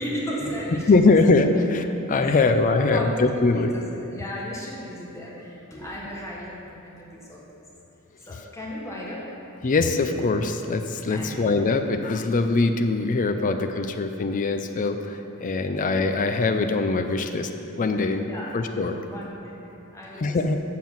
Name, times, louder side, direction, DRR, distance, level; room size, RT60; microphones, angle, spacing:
voice 1, 0.0-1.2 1.9-2.5 2.8-7.4 8.2-9.2 11.1-11.4 13.4-13.5 15.7-15.8 18.3-18.5 19.0-19.6 19.9-20.4, equal, 15° left, -5 dB, 1.4 m, -35 dB
voice 2, 0.9-3.7 9.6-17.5 17.8-19.0 20.2-20.6, left 3 dB, 35° left, 6 dB, 0.4 m, -22 dB
7.4 x 6.0 x 7.2 m, 2.9 s
head